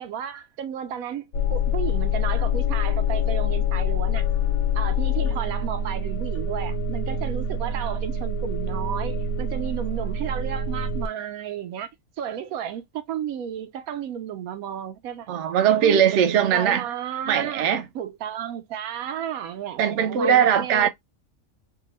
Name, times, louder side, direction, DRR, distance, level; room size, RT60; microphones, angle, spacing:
voice 1, 0.0-4.2 4.7-11.9 12.2-15.3 15.8-20.9, right 9 dB, 85° right, 1.1 m, -33 dB
sound 1, 1.3-11.1, left 4 dB, 90° left, 1.1 m, -25 dB
voice 2, 15.3-16.8 17.3-17.8 19.8-20.9, right 8 dB, 65° right, 0.8 m, -20 dB
2.8 x 2.3 x 3.0 m
omnidirectional pair, 1.5 m